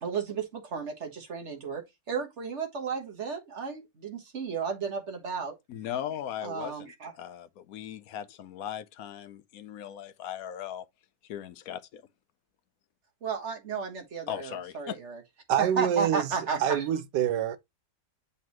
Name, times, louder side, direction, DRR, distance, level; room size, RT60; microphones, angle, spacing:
voice 1, 0.0-5.5 6.4-7.1 13.2-15.2 15.6-16.9, right 5 dB, 40° right, 1.6 m, -33 dB
voice 2, 5.7-10.9 11.2-12.0 14.3-15.0, left 10 dB, 65° left, 0.9 m, -38 dB
voice 3, 15.5-17.6, right 9 dB, 75° right, 1.3 m, -27 dB
7.6 x 4.2 x 3.0 m
omnidirectional pair, 1.9 m